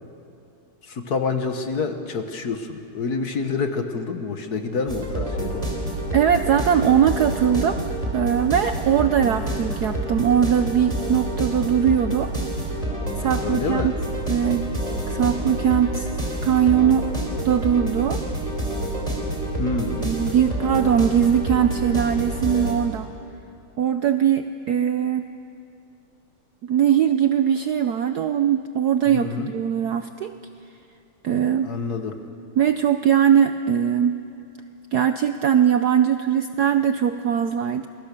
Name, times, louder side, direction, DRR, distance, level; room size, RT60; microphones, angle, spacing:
voice 1, 0.8-5.7 13.4-14.0 19.6-20.1 29.0-29.5 31.6-32.2, left 4 dB, 50° left, 7 dB, 1.6 m, -27 dB
sound 1, 4.9-22.7, right 1 dB, 15° right, 3.7 m, -28 dB
voice 2, 6.1-7.8 8.1-12.3 13.2-13.9 14.3-14.6 15.1-16.1 16.4-17.1 17.4-18.2 20.0-23.1 23.8-25.3 26.6-30.4 31.2-31.7 32.6-34.2 34.9-37.9, right 9 dB, 70° right, 9 dB, 0.9 m, -20 dB
28.0 x 22.0 x 6.8 m, 2.6 s
omnidirectional pair, 2.4 m